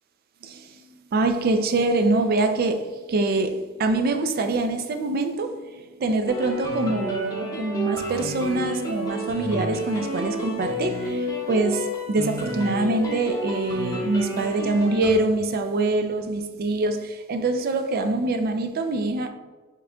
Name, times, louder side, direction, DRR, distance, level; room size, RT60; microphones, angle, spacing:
voice 1, 0.4-19.3, right 2 dB, 45° right, 7 dB, 0.4 m, -24 dB
sound 1, 6.3-15.1, equal, 15° left, 0.7 m, -30 dB
4.5 x 3.7 x 2.2 m, 1.3 s
head